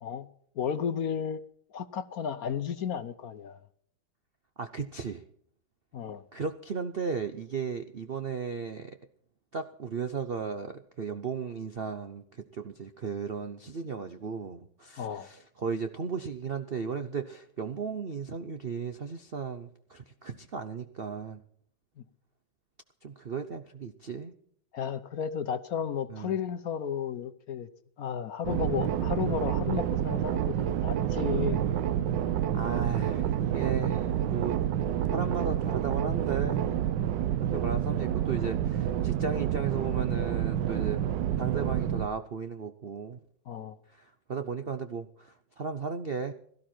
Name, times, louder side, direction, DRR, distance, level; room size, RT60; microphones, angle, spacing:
voice 1, 0.6-1.4 1.7-3.6 5.9-6.2 15.0-15.3 22.0-22.1 24.7-27.7 28.0-31.6 43.5-43.8, left 7 dB, 60° left, 1.1 m, -33 dB
voice 2, 4.6-5.2 6.3-9.0 9.5-21.4 23.0-24.3 26.1-26.4 32.5-34.6 35.1-36.7 37.4-41.1 41.4-43.2 43.9-46.3, right 5 dB, 55° right, 0.6 m, -35 dB
sound 1, 28.4-42.1, right 10 dB, 70° right, 1.4 m, -28 dB
17.0 x 13.5 x 4.4 m
omnidirectional pair, 2.1 m